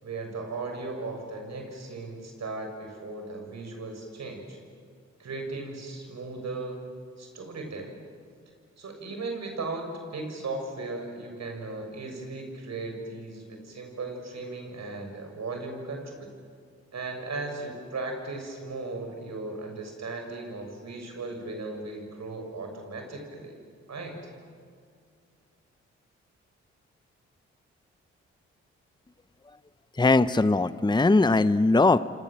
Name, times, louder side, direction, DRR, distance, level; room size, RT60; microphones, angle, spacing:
voice 1, 0.0-4.6 5.2-6.8 7.2-8.0 8.8-9.9 10.1-16.3 16.9-23.6 23.9-24.2, right 3 dB, 60° right, 4 dB, 6.8 m, -37 dB
voice 2, 29.9-32.0, left 3 dB, 15° left, 14 dB, 0.9 m, -20 dB
29.0 x 26.0 x 7.6 m, 2.2 s
hypercardioid pair, 45°, 31 cm